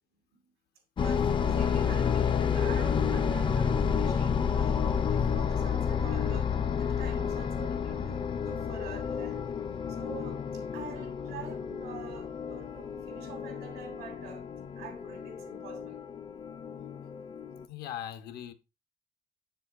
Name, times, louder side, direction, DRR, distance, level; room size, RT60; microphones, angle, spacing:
sound 1, 1.0-17.6, left 7 dB, 30° left, 0.4 m, -30 dB
voice 1, 1.0-9.5 9.9-14.5 14.8-16.0, right 6 dB, 90° right, 2.4 m, -47 dB
voice 2, 17.7-18.5, left 10 dB, 70° left, 0.7 m, -39 dB
7.2 x 6.9 x 2.4 m
cardioid pair, 110°, 17 cm